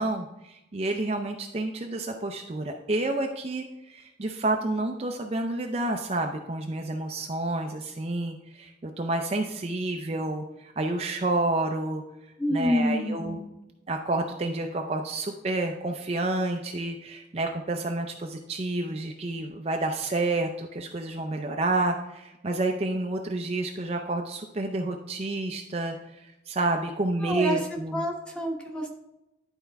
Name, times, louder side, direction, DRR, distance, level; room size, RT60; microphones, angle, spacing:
voice 1, 0.0-12.0 12.5-13.4 13.9-28.0, right 2 dB, 35° right, 3 dB, 0.5 m, -29 dB
voice 2, 12.4-13.4 27.1-27.6 27.9-28.9, equal, 5° left, 0 dB, 1.2 m, -27 dB
11.0 x 4.4 x 3.5 m, 0.92 s
head